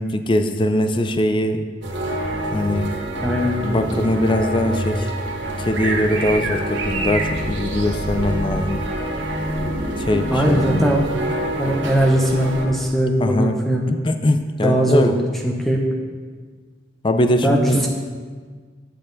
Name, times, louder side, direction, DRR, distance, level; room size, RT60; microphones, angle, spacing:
voice 1, 0.0-1.6 2.5-2.9 3.6-5.1 5.6-8.8 10.0-10.9 13.2-13.6 13.9-15.1 17.0-17.8, left 1 dB, 25° left, 8 dB, 0.4 m, -21 dB
sound 1, 1.8-12.7, right 1 dB, 70° right, 1.4 m, -26 dB
voice 2, 3.2-3.6 10.3-11.0 11.6-13.8 14.6-15.2 15.4-15.8 17.4-17.9, equal, ahead, 0 dB, 0.9 m, -19 dB
11.0 x 7.6 x 4.0 m, 1.6 s
head